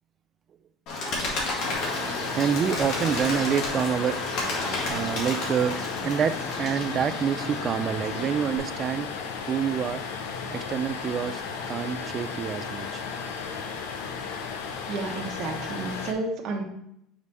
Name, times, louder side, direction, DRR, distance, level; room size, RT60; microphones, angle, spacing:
Bird, 0.9-8.6, left 2 dB, 55° left, 1.9 m, -32 dB
sound 1, 1.6-16.1, left 5 dB, 80° left, 0.7 m, -34 dB
voice 1, 2.3-4.2 4.9-9.1 9.5-10.1 10.5-11.4 11.7-13.0, right 8 dB, 35° right, 13 dB, 0.3 m, -27 dB
voice 2, 14.9-16.6, right 3 dB, 50° right, 1 dB, 1.0 m, -31 dB
5.2 x 4.9 x 4.2 m, 0.79 s
cardioid pair, 140°, 0 cm